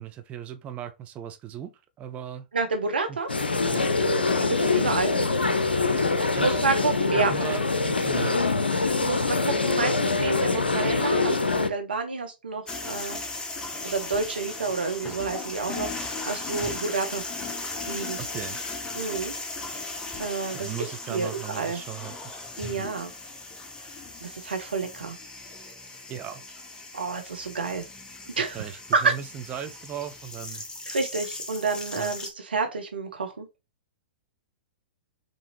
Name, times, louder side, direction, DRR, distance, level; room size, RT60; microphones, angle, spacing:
voice 1, 0.0-1.7 2.0-2.5 3.1-3.2 3.7-3.9 6.3-6.6 7.1-8.9 9.2-9.4 18.2-18.6 20.5-22.1 22.7-22.9 26.1-26.4 28.4-30.6 32.0-32.1, right 9 dB, 25° right, 0.6 m, -37 dB
voice 2, 2.5-3.3 4.4-5.1 6.0-7.5 9.0-13.2 13.8-17.2 17.9-18.2 19.0-19.3 19.7-19.9 20.2-20.7 21.1-21.8 22.6-23.1 24.2-25.2 26.9-27.9 28.4-28.6 28.9-29.1 30.9-33.5, right 4 dB, 75° right, 0.8 m, -29 dB
sound 1, 3.3-11.7, left 3 dB, 85° left, 0.5 m, -24 dB
sound 2, 12.7-32.3, left 3 dB, 15° left, 0.9 m, -37 dB
5.3 x 2.8 x 2.8 m
figure-of-eight pair, 105°, 5 cm